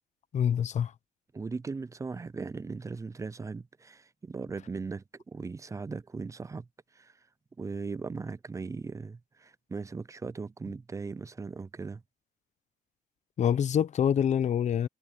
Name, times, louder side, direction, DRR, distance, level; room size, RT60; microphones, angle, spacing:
voice 1, 0.3-0.9 13.4-14.9, left 8 dB, 45° left, 0.9 m, -26 dB
voice 2, 1.3-6.7 6.9-7.2 7.6-12.0, right 4 dB, 20° right, 0.6 m, -38 dB
cardioid pair, 110°, 17 cm